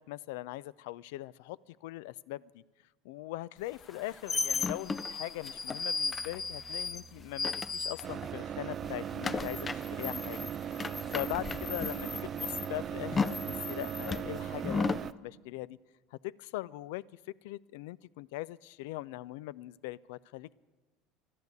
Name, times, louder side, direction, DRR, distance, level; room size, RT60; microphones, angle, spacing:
voice 1, 0.0-2.6 3.0-15.8 16.1-17.0 17.4-20.5, left 17 dB, 80° left, 22 dB, 0.3 m, -41 dB
sound 1, 3.8-8.4 8.7-15.1, left 4 dB, 25° left, 0.5 m, -35 dB
Piano, 6.1-14.2, right 6 dB, 60° right, 0.7 m, -57 dB
sound 2, 8.0-15.1, right 9 dB, 40° right, 0.3 m, -38 dB
12.0 x 10.5 x 8.1 m, 1.3 s
supercardioid pair, 100°, 0 cm